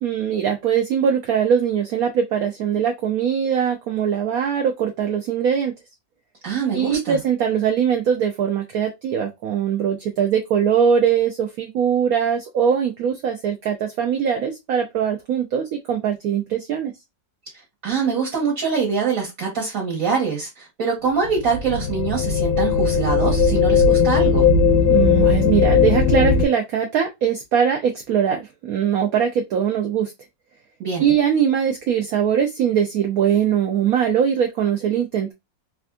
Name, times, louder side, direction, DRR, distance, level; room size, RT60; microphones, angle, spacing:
voice 1, 0.0-5.7 6.7-16.9 24.9-30.1 31.0-35.3, right 8 dB, 70° right, 0.9 m, -21 dB
voice 2, 6.4-7.2 17.8-24.5 30.8-31.1, right 5 dB, 55° right, 1.4 m, -24 dB
sound 1, 21.2-26.4, left 6 dB, 70° left, 1.0 m, -17 dB
3.4 x 2.5 x 2.3 m
omnidirectional pair, 1.9 m